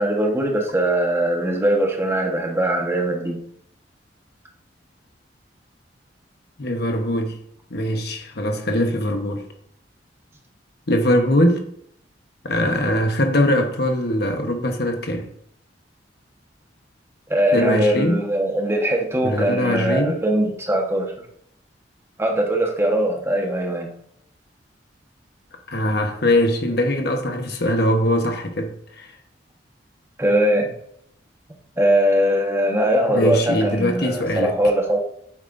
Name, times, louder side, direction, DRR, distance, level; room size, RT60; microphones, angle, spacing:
voice 1, 0.0-3.4 17.3-21.1 22.2-23.9 30.2-30.7 31.8-35.0, right 1 dB, 15° right, 1.2 m, -21 dB
voice 2, 6.6-7.4 7.7-9.5 10.9-11.7 12.4-15.3 17.5-18.2 19.2-20.2 25.7-29.1 33.1-34.5, left 1 dB, 60° left, 1.1 m, -21 dB
9.1 x 7.5 x 2.6 m
head